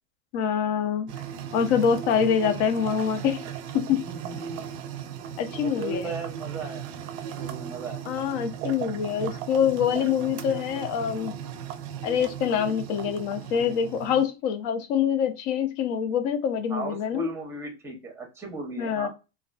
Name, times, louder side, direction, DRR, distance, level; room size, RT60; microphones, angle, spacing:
voice 1, 0.3-1.1 1.5-3.4 3.7-4.0 5.4-6.1 8.1-11.3 12.0-17.3 18.8-19.1, left 8 dB, 60° left, 8 dB, 0.6 m, -25 dB
sound 1, 1.1-14.3, right 9 dB, 55° right, 0.4 m, -37 dB
voice 2, 3.9-4.6 5.5-7.0 7.3-8.1 16.7-19.1, right 3 dB, 5° right, 3 dB, 0.6 m, -36 dB
2.4 x 2.3 x 2.3 m, 0.28 s
supercardioid pair, 135°, 38 cm